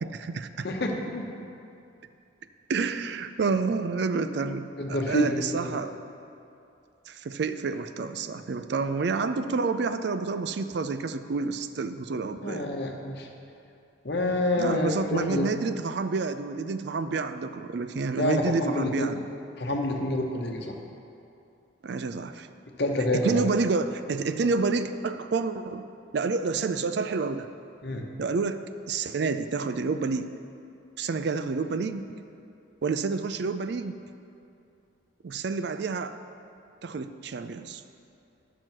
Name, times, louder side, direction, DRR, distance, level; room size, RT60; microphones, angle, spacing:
voice 1, 0.0-0.7 2.7-6.0 7.1-12.7 14.6-19.2 21.8-22.5 23.1-25.9 26.1-27.5 28.2-30.3 31.0-32.2 32.8-34.0 35.2-36.2 36.8-37.8, right 4 dB, 60° right, 10 dB, 0.4 m, -29 dB
voice 2, 0.6-1.2 4.8-5.8 12.4-13.3 14.0-15.6 18.2-19.2 19.6-20.8 22.8-23.5 27.8-28.0, left 1 dB, 60° left, 2 dB, 1.0 m, -27 dB
12.0 x 6.2 x 4.5 m, 2.6 s
head